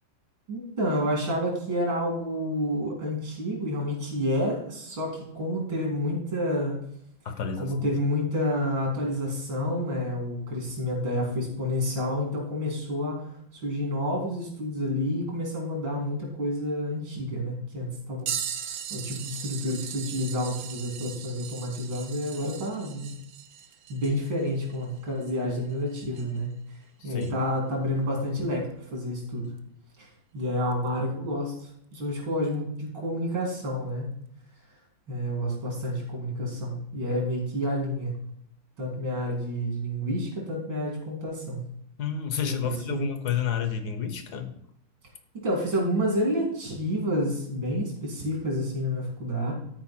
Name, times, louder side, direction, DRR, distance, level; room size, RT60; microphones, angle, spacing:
voice 1, 0.5-6.8 7.6-18.3 18.7-23.1 23.9-26.5 27.0-29.5 30.0-30.1 30.3-34.1 35.1-38.1 38.8-41.6 42.4-43.1 45.4-49.5, equal, 80° right, -2 dB, 3.5 m, -29 dB
voice 2, 7.2-7.9 27.0-27.4 42.0-44.5, left 7 dB, 65° left, 9 dB, 1.3 m, -30 dB
sound 1, 18.3-26.5 27.2-27.3 29.6-29.7 30.7-30.9 31.9-32.0, right 8 dB, 65° right, 1.1 m, -38 dB
13.0 x 4.5 x 4.3 m, 0.71 s
omnidirectional pair, 2.1 m